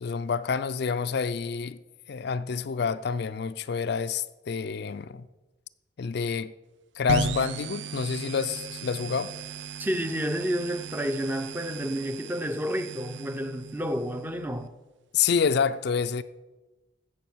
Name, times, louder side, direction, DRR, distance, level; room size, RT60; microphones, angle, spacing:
voice 1, 0.0-1.8 2.1-5.3 6.0-6.5 7.0-9.3 15.1-16.2, left 6 dB, 55° left, 0.4 m, -28 dB
sound 1, 7.1-14.7, right 5 dB, 65° right, 0.5 m, -37 dB
voice 2, 9.8-14.7, equal, 10° right, 0.5 m, -30 dB
15.5 x 6.2 x 6.1 m
head